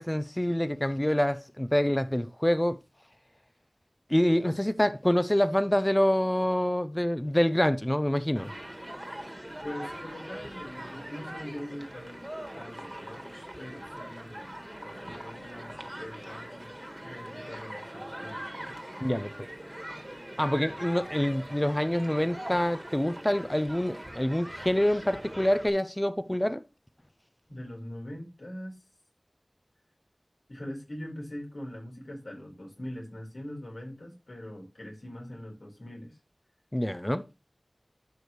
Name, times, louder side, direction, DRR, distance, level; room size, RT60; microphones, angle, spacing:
voice 1, 0.0-2.8 4.1-8.5 19.0-19.3 20.4-26.6 36.7-37.3, left 1 dB, 20° left, 0.6 m, -26 dB
Human group actions, 8.4-25.7, right 1 dB, 20° right, 1.6 m, -42 dB
voice 2, 9.6-12.3 12.5-16.7 17.0-18.7 27.5-28.8 30.5-36.2, left 1 dB, 85° left, 4.6 m, -42 dB
12.5 x 5.0 x 3.1 m
wide cardioid pair, 40°, 0 cm